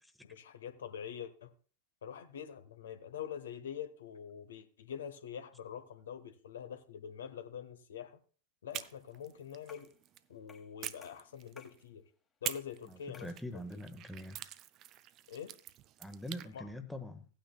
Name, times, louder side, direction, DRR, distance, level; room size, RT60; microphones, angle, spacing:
voice 1, 0.2-1.5 2.0-8.2 8.6-9.9 10.3-12.0 12.4-13.3 15.3-15.5 16.5-16.6, left 8 dB, 65° left, 1.0 m, -45 dB
sound 1, 8.7-10.3 10.8-11.8 12.4-16.5, right 13 dB, 35° right, 0.5 m, -46 dB
sound 2, 9.7-10.0 10.5-10.7 11.0-11.8 12.4-12.7 13.1-13.4, left 5 dB, 20° left, 1.6 m, -58 dB
voice 2, 12.9-14.4 16.0-17.2, left 1 dB, ahead, 1.1 m, -43 dB
17.0 x 9.1 x 2.3 m
figure-of-eight pair, 90°, 0 cm